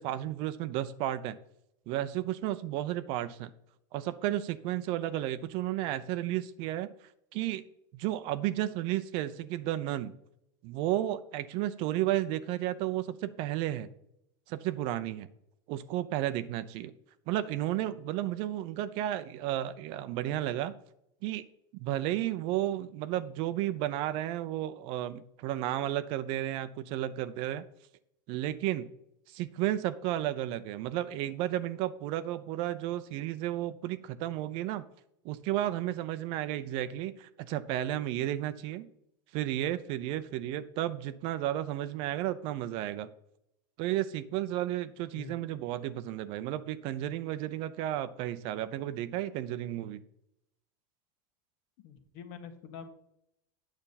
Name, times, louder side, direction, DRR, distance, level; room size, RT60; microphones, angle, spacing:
voice 1, 0.0-1.4 1.9-3.5 3.9-6.9 7.3-7.6 7.9-10.1 10.6-13.9 14.5-15.3 15.7-16.9 17.3-20.7 21.2-21.4 21.7-27.6 28.3-28.9 29.3-34.8 35.2-38.9 39.3-43.1 43.8-50.0, right 13 dB, 55° right, 13 dB, 0.7 m, -33 dB
voice 2, 45.1-45.5 51.8-52.9, left 7 dB, 60° left, 7 dB, 1.5 m, -46 dB
9.0 x 7.0 x 4.1 m, 0.77 s
supercardioid pair, 140°, 11 cm